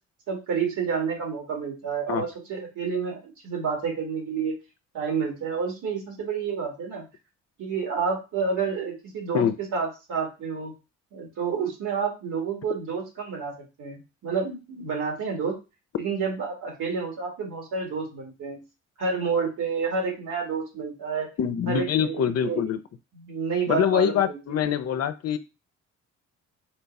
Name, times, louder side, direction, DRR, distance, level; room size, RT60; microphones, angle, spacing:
voice 1, 0.3-4.5 4.9-7.0 7.6-9.4 9.7-10.7 11.1-15.6 16.0-18.6 19.0-21.3 21.7-22.6 23.1-24.7, right 5 dB, 75° right, 0 dB, 2.1 m, -29 dB
voice 2, 21.4-22.8 23.7-25.4, left 9 dB, 55° left, 11 dB, 0.5 m, -24 dB
4.3 x 2.3 x 4.0 m, 0.28 s
cardioid pair, 90°, 30 cm